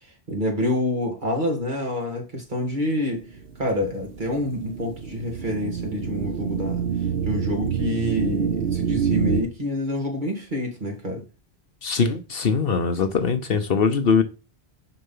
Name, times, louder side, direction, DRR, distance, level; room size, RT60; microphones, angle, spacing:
voice 1, 0.3-3.2 3.6-6.9 7.2-11.2, left 1 dB, 50° right, 2.5 m, -27 dB
sound 1, 3.3-9.4, right 7 dB, 65° right, 1.3 m, -27 dB
voice 2, 11.8-14.2, left 5 dB, 65° left, 1.0 m, -21 dB
6.7 x 5.6 x 5.6 m
omnidirectional pair, 1.1 m